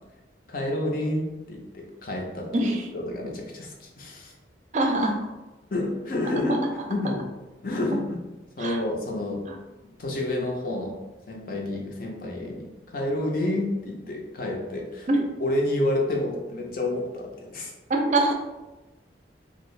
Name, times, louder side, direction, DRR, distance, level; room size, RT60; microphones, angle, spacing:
voice 1, 0.5-2.5 2.9-4.3 5.7-6.6 6.9-7.2 7.6-8.2 8.6-9.4 10.0-11.0 11.3-12.7 12.9-15.1 15.4-17.7, left 1 dB, 50° left, 0 dB, 0.5 m, -29 dB
voice 2, 2.5-2.9 4.7-5.2 8.6-8.8 9.5-9.6 15.1-15.2 17.9-18.3, right 2 dB, 40° right, 2 dB, 0.4 m, -23 dB
2.7 x 2.4 x 3.1 m, 1.1 s
head